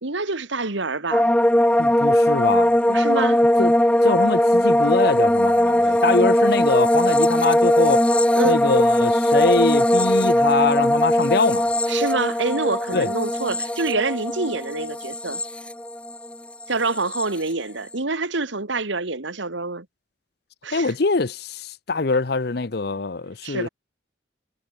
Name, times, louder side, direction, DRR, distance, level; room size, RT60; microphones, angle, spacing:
voice 1, 0.0-1.3 2.9-3.4 8.3-8.6 11.9-15.4 16.7-19.9 20.6-20.9 23.4-23.7, right 3 dB, 70° right, 1.8 m, -26 dB
sound 1, 1.1-16.3 16.6-17.2, left 1 dB, 5° left, 0.7 m, -19 dB
voice 2, 1.8-2.8 3.6-3.7 4.0-8.1 8.4-11.7 12.9-13.1 20.7-23.7, left 3 dB, 55° left, 0.7 m, -23 dB
head